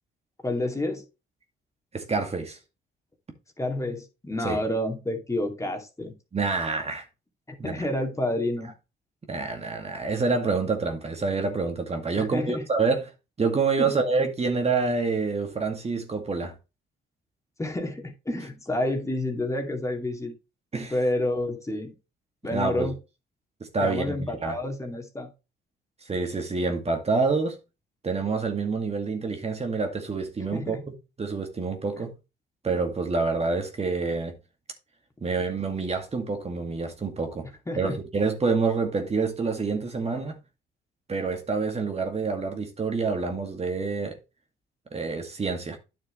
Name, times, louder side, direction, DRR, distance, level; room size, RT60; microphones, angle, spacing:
voice 1, 0.4-1.0 3.6-6.1 7.6-8.7 12.3-12.6 13.8-14.0 17.6-20.3 20.9-21.9 22.4-23.0 23.8-25.3 30.5-30.8 37.7-38.0, left 1 dB, 15° left, 2.5 m, -29 dB
voice 2, 1.9-2.6 4.4-4.6 6.3-7.1 7.6-7.9 9.3-13.1 13.4-16.5 20.7-20.9 22.5-22.9 23.7-24.6 26.0-27.6 28.0-30.8 31.2-32.1 32.6-34.4 35.2-37.5 37.8-40.4 41.1-44.2 44.9-45.8, right 4 dB, 30° right, 2.1 m, -27 dB
9.6 x 6.6 x 3.2 m
cardioid pair, 90°, 20 cm